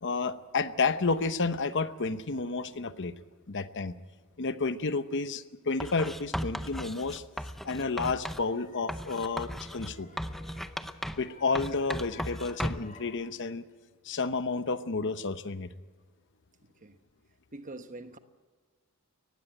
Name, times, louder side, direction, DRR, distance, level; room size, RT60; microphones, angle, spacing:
voice 1, 0.0-3.1 3.5-3.9 4.4-7.2 7.6-10.1 11.2-13.6 14.0-15.7, left 4 dB, 55° left, 0.9 m, -31 dB
Writing, 5.8-8.5 8.9-11.3 11.6-13.0, equal, ahead, 0.6 m, -36 dB
sound 1, 8.2-13.2, left 3 dB, 35° left, 3.6 m, -54 dB
voice 2, 16.6-17.0 17.5-18.2, right 2 dB, 35° right, 1.1 m, -44 dB
19.0 x 15.5 x 9.0 m
head